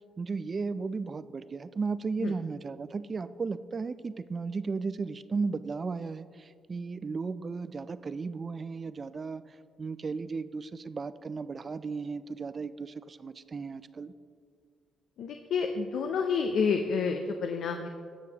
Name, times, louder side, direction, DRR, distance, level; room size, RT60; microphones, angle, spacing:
voice 1, 0.2-9.4 9.8-14.1, right 4 dB, 35° right, 14 dB, 0.3 m, -35 dB
voice 2, 15.2-17.9, left 5 dB, 70° left, 5 dB, 0.5 m, -29 dB
16.5 x 6.4 x 2.9 m, 2.2 s
cardioid pair, 90°, 0 cm